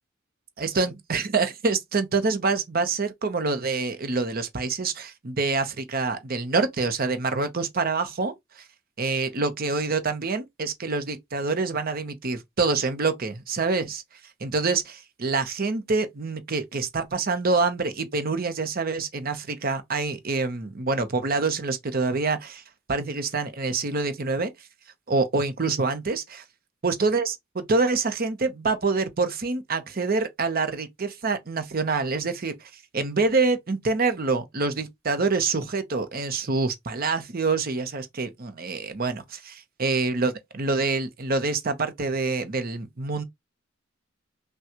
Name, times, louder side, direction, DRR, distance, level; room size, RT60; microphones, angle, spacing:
voice 1, 0.6-8.6 9.0-14.0 14.4-22.6 22.9-24.5 25.1-26.4 26.8-43.2, right 3 dB, 45° right, 0.8 m, -26 dB
6.1 x 2.3 x 2.9 m
head